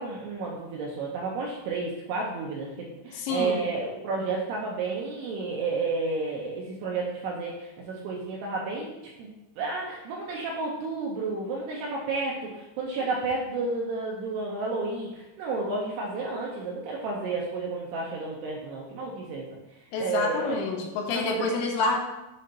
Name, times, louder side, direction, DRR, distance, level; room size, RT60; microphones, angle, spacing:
voice 1, 0.0-19.5 20.0-20.7 21.1-21.5, right 3 dB, 80° right, -2 dB, 2.5 m, -31 dB
voice 2, 3.1-3.6 19.9-22.0, left 3 dB, 85° left, 1 dB, 3.3 m, -28 dB
7.5 x 2.9 x 5.1 m, 0.96 s
omnidirectional pair, 5.5 m